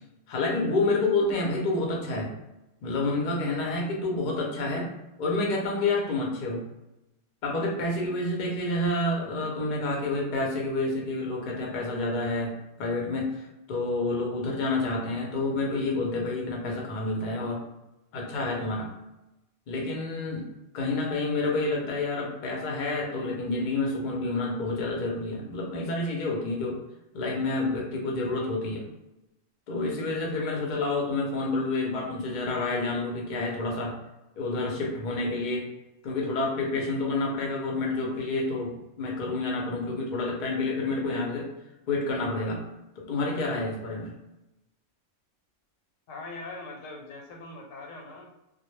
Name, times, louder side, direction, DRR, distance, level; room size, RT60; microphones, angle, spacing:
voice 1, 0.3-2.4 2.8-4.9 5.2-6.7 7.4-17.6 18.1-18.9 19.7-20.5 20.7-26.8 27.1-28.9 29.7-34.0 34.4-35.7 36.0-41.5 41.9-42.7 43.0-44.1, left 2 dB, 50° left, -1 dB, 0.5 m, -29 dB
voice 2, 46.1-48.3, left 2 dB, 90° left, 1 dB, 1.0 m, -41 dB
2.1 x 2.0 x 3.1 m, 0.93 s
omnidirectional pair, 1.3 m